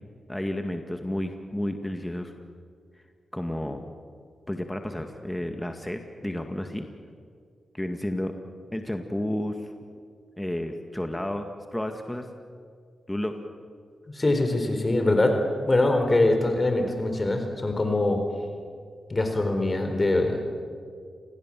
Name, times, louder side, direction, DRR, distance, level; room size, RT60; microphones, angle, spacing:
voice 1, 0.3-2.3 3.3-3.8 4.5-6.9 7.7-8.3 8.7-9.7 10.4-12.3 13.1-13.4, left 1 dB, 10° left, 5 dB, 2.0 m, -31 dB
voice 2, 14.1-15.4 15.7-18.2 19.1-20.4, left 2 dB, 30° left, 5 dB, 4.2 m, -23 dB
29.0 x 21.5 x 7.7 m, 2.2 s
cardioid pair, 65°, 0 cm